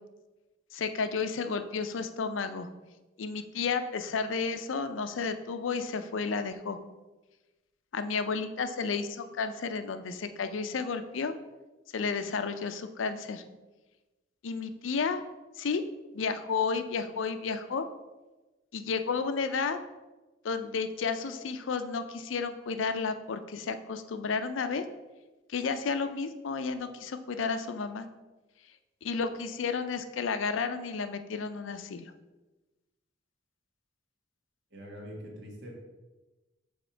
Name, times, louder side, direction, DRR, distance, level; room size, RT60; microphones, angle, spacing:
voice 1, 0.7-2.7 3.2-6.8 7.9-11.3 11.9-13.4 14.4-15.2 15.6-15.8 16.1-17.9 18.7-19.8 20.4-24.8 25.5-28.1 29.0-32.1, left 5 dB, 90° left, 9 dB, 0.5 m, -32 dB
voice 2, 34.7-35.8, equal, 65° right, 0 dB, 1.4 m, -44 dB
6.3 x 3.6 x 4.4 m, 1.1 s
head